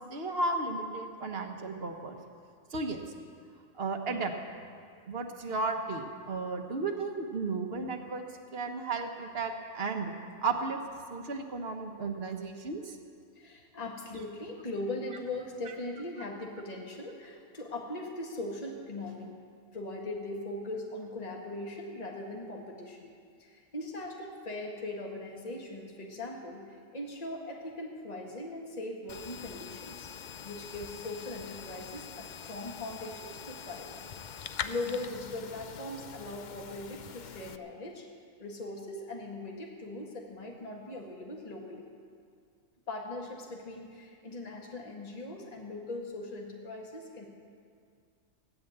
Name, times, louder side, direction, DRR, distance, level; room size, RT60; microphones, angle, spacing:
voice 1, 0.0-2.2 2.7-3.0 3.8-4.3 5.1-8.2 8.5-10.1 10.4-10.8 11.1-13.0, right 3 dB, 55° right, 5 dB, 1.4 m, -34 dB
voice 2, 13.4-19.4 19.7-23.1 23.4-30.1 30.4-33.9 34.2-34.4 34.6-38.1 38.4-41.9 42.9-47.3, left 2 dB, 30° left, -1 dB, 1.8 m, -40 dB
sound 1, 29.1-37.6, left 7 dB, 50° left, 0.6 m, -44 dB
16.5 x 10.5 x 8.0 m, 2.2 s
omnidirectional pair, 1.3 m